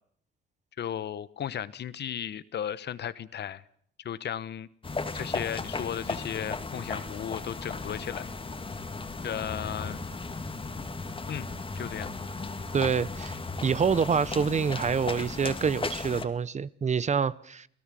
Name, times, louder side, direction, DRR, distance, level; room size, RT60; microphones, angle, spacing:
voice 1, 0.8-3.6 4.0-4.7 5.1-8.3 9.2-10.0 11.3-11.5 11.7-12.1, left 9 dB, 60° left, 1.1 m, -35 dB
sound 1, 4.8-16.2, left 3 dB, 25° left, 2.5 m, -36 dB
voice 2, 12.7-13.4 13.6-17.7, right 6 dB, 35° right, 0.8 m, -26 dB
28.5 x 17.0 x 7.7 m
cardioid pair, 90°, 20 cm